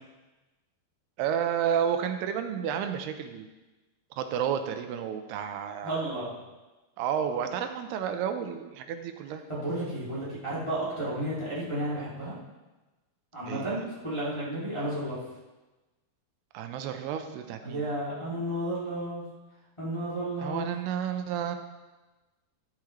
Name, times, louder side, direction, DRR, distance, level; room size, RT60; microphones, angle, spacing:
voice 1, 1.2-3.5 4.2-6.2 7.0-9.4 13.5-13.8 16.5-17.9 20.4-21.6, right 8 dB, 90° right, 7 dB, 2.7 m, -31 dB
voice 2, 5.8-6.3 9.5-12.3 13.3-15.2 17.6-19.3 19.8-20.7, right 1 dB, 10° left, -10 dB, 1.9 m, -32 dB
13.0 x 8.4 x 3.2 m, 1.1 s
omnidirectional pair, 4.6 m